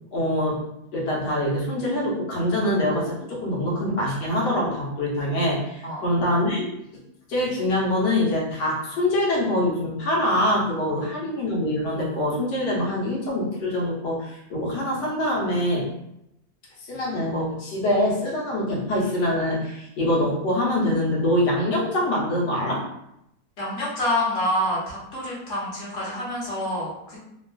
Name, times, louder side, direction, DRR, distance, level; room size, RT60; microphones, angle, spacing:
voice 1, 0.1-0.6 0.9-6.7 7.3-15.9 16.9-22.8, left 1 dB, 70° left, -4 dB, 1.4 m, -24 dB
voice 2, 10.9-11.3 23.6-27.2, left 1 dB, 50° left, -6 dB, 1.2 m, -27 dB
3.3 x 2.3 x 2.2 m, 0.81 s
omnidirectional pair, 2.0 m